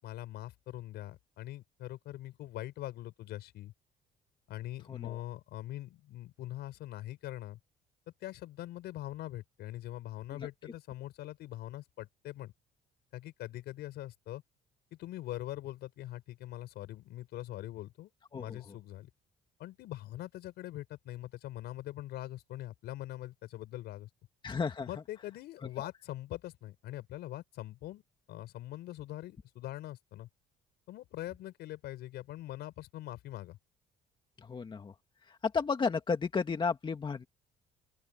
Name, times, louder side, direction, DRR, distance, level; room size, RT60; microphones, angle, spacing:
voice 1, 0.0-3.7 4.5-7.6 8.2-12.5 13.1-14.4 14.9-19.1 19.6-24.1 24.9-28.0 28.3-30.3 30.9-33.6, left 15 dB, 75° left, 5.8 m, -43 dB
voice 2, 4.9-5.2 10.4-10.5 18.3-18.6 24.4-24.9 25.8-25.9 34.4-34.9 35.3-37.3, left 5 dB, 30° left, 1.9 m, -33 dB
open air
cardioid pair, 110°, 17 cm